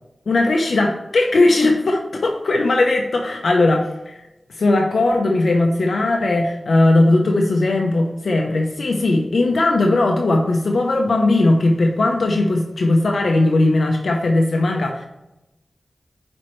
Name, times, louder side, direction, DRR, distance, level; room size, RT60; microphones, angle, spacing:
voice 1, 0.3-4.2 4.5-15.1, left 2 dB, 75° left, 1 dB, 0.8 m, -18 dB
10.0 x 4.4 x 3.2 m, 0.94 s
wide cardioid pair, 85°, 0 cm